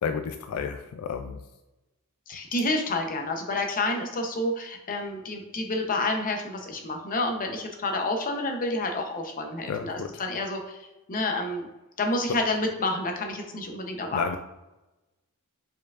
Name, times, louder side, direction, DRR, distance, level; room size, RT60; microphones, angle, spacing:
voice 1, 0.0-1.4 9.7-10.2 14.1-14.4, left 6 dB, 70° left, 8 dB, 0.3 m, -31 dB
voice 2, 2.3-10.8 11.1-11.7 12.0-14.2, left 2 dB, 40° left, 3 dB, 0.7 m, -29 dB
4.7 x 4.5 x 2.4 m, 1.0 s
head